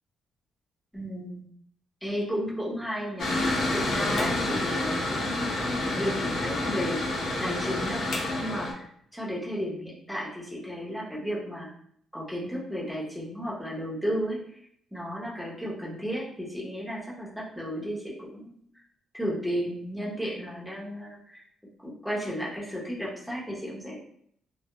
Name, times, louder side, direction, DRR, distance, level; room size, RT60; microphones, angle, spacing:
voice 1, 0.9-1.4 2.0-7.0 7.4-8.0 8.4-8.9 9.1-11.7 12.1-14.4 14.9-18.6 19.1-21.4 21.8-24.0, equal, ahead, -5 dB, 0.8 m, -33 dB
Mechanical fan, 3.2-8.7, left 2 dB, 70° left, 0.6 m, -28 dB
2.2 x 2.0 x 3.0 m, 0.66 s
cardioid pair, 90°, 0 cm